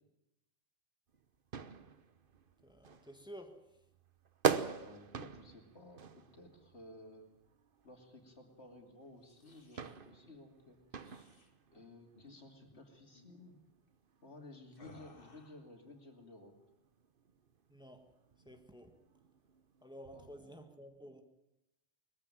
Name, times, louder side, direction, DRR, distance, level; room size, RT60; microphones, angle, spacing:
sound 1, 1.1-20.5, right 6 dB, 55° right, 1.2 m, -44 dB
voice 1, 2.6-3.9 17.7-18.1 18.4-19.0 19.8-21.2, equal, 5° right, 5 dB, 1.7 m, -52 dB
voice 2, 4.8-7.3 7.8-10.8 11.7-13.5 14.2-16.5 20.1-20.5, left 2 dB, 85° left, 4 dB, 3.1 m, -55 dB
sound 2, 9.1-10.0 10.9-11.5 12.1-12.4 12.6-12.8 13.1-13.4 14.7-15.7, left 2 dB, 55° left, 2.4 m, -60 dB
21.0 x 15.0 x 9.1 m, 0.92 s
omnidirectional pair, 1.1 m